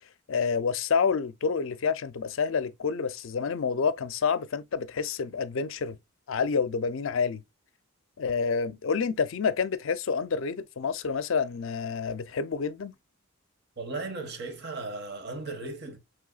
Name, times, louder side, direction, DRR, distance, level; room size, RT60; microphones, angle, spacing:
voice 1, 0.3-6.0 6.3-7.4 8.2-12.9, left 5 dB, 60° left, 0.4 m, -28 dB
voice 2, 13.8-16.0, right 3 dB, 50° right, 0.8 m, -36 dB
5.4 x 3.3 x 2.3 m
head